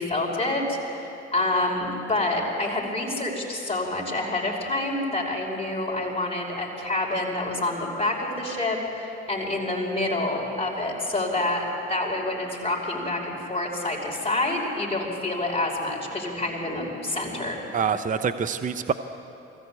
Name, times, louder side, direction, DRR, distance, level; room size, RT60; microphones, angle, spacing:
voice 1, 0.0-17.6, left 2 dB, 20° left, -1 dB, 5.4 m, -27 dB
voice 2, 17.7-18.9, right 6 dB, 25° right, 9 dB, 0.8 m, -25 dB
23.0 x 15.0 x 8.4 m, 2.9 s
hypercardioid pair, 55°, 32 cm